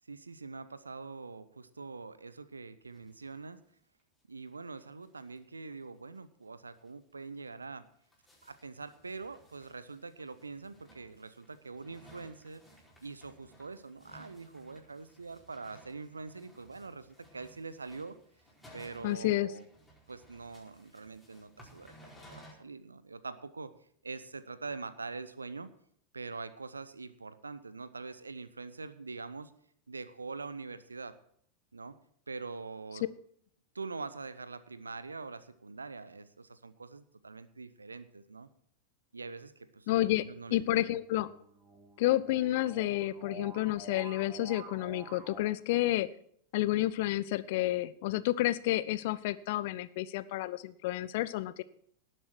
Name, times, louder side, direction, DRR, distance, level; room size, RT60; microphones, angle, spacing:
voice 1, 0.1-3.6 4.3-7.8 8.4-12.6 13.0-18.2 18.7-19.6 20.1-21.9 22.3-23.7 24.0-25.7 26.1-29.5 29.9-31.2 31.7-32.0 32.3-33.0 33.7-38.5 39.1-41.0, right 4 dB, 75° right, 15 dB, 0.8 m, -44 dB
sound 1, 2.9-3.4 3.7-3.8 4.0-4.1 4.5-4.6 4.8-5.4 5.7-5.8 6.1-6.2 6.7-6.9 7.5-22.5, equal, 5° left, 4.7 m, -59 dB
voice 2, 19.0-19.5 39.9-40.2 40.5-41.3 42.0-46.1 46.5-51.6, left 16 dB, 50° left, 16 dB, 0.6 m, -30 dB
sound 2, 40.1-45.4, right 3 dB, 25° right, 2.0 m, -50 dB
18.5 x 7.7 x 4.6 m, 0.65 s
figure-of-eight pair, 90°, 0 cm